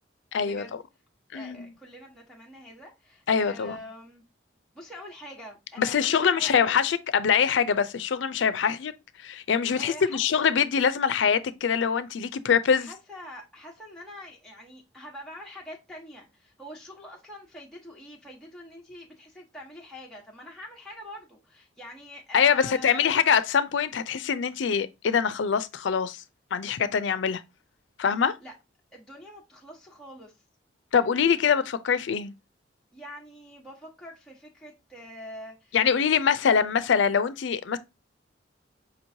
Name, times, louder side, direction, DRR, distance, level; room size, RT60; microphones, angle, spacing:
voice 1, 0.3-0.7 1.3-1.7 3.3-3.8 5.8-8.9 9.2-12.9 22.3-26.2 26.5-27.4 28.0-28.4 30.9-32.3 35.7-37.8, left 7 dB, 80° left, 0.4 m, -24 dB
voice 2, 1.3-4.2 4.7-6.6 9.8-10.4 12.8-23.0 28.4-28.5 28.9-30.3 32.9-35.8, left 1 dB, 5° left, 1.0 m, -45 dB
5.0 x 3.0 x 2.6 m
head